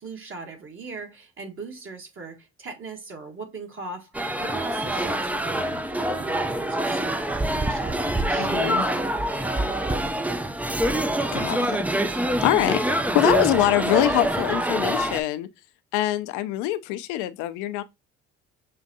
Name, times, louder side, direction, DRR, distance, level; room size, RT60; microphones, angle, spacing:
voice 1, 0.0-9.4, right 3 dB, 40° right, 1.5 m, -39 dB
sound 1, 4.1-15.2, right 1 dB, 5° right, 0.4 m, -25 dB
voice 2, 8.4-8.8 11.3-11.8 12.1-15.5 15.9-17.8, left 14 dB, 75° left, 0.6 m, -24 dB
6.5 x 2.5 x 2.6 m
hypercardioid pair, 70°, 31 cm